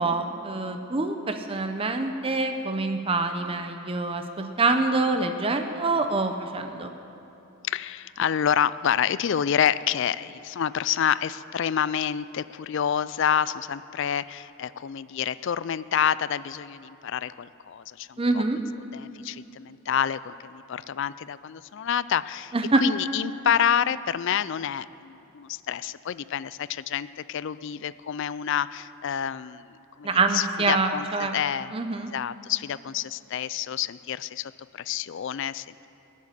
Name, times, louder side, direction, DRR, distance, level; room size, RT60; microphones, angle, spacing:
voice 1, 0.0-6.9 18.2-18.6 22.5-22.8 30.0-31.3 31.7-32.1, right 3 dB, 25° right, 6 dB, 0.6 m, -25 dB
voice 2, 7.7-18.4 18.9-35.9, left 8 dB, 55° left, 17 dB, 0.3 m, -28 dB
18.0 x 7.4 x 9.6 m, 2.9 s
head